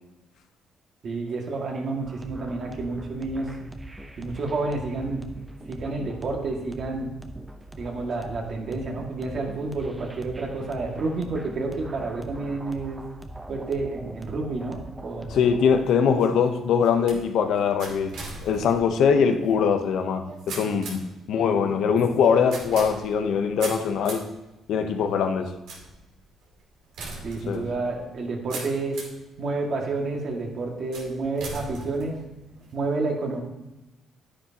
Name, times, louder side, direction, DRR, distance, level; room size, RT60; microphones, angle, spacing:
voice 1, 1.0-3.5 4.2-5.2 5.7-7.1 7.7-13.0 13.5-15.4 27.2-29.0 29.4-32.2 32.7-33.4, right 3 dB, 60° right, 0 dB, 2.0 m, -29 dB
sound 1, 2.0-15.7, right 1 dB, 15° right, 0.8 m, -42 dB
voice 2, 15.3-18.1 18.4-24.3 24.7-25.5 27.5-27.7, left 6 dB, 75° left, 7 dB, 0.8 m, -22 dB
sound 2, 15.7-29.3 29.8-30.3 30.9-32.7, right 3 dB, 90° right, 2.4 m, -41 dB
9.9 x 9.9 x 2.9 m, 0.99 s
cardioid pair, 90°, 0 cm